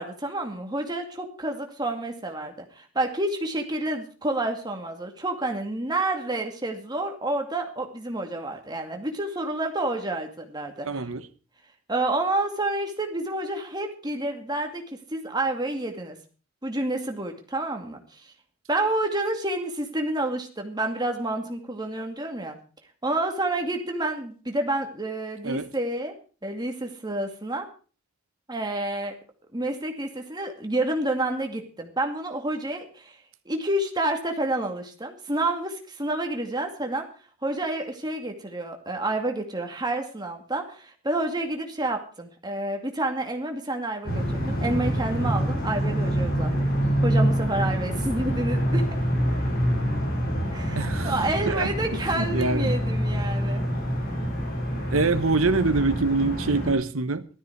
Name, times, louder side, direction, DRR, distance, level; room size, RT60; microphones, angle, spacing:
voice 1, 0.0-11.0 11.9-16.2 16.6-18.3 18.7-22.6 23.0-26.1 26.4-27.7 28.5-29.1 29.5-33.2 33.5-37.1 37.4-46.7 47.0-48.9 50.5-53.6, right 2 dB, 20° right, 2.2 m, -29 dB
voice 2, 10.8-11.3 25.4-25.7 50.8-51.1 51.5-51.7 52.2-52.8 53.7-53.8 54.7-57.3, right 3 dB, 75° right, 1.2 m, -25 dB
sound 1, 44.0-56.7, equal, 45° left, 6.1 m, -26 dB
15.0 x 13.0 x 4.7 m
head